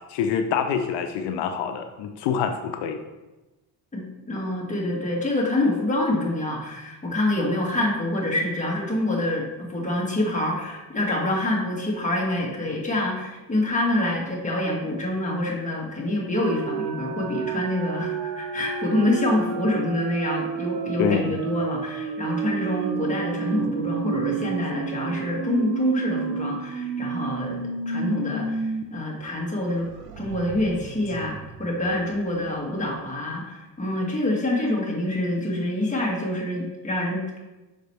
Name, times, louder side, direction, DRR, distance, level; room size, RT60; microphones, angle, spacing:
voice 1, 0.1-3.0 21.0-21.4, left 7 dB, 90° left, 7 dB, 0.6 m, -26 dB
voice 2, 3.9-29.9 30.2-37.4, left 1 dB, 20° left, -3 dB, 2.1 m, -26 dB
sound 1, 16.4-28.8 29.2-29.3 29.6-32.3, right 6 dB, 70° right, 0.7 m, -31 dB
6.5 x 5.1 x 3.3 m, 1.1 s
cardioid pair, 90°, 40 cm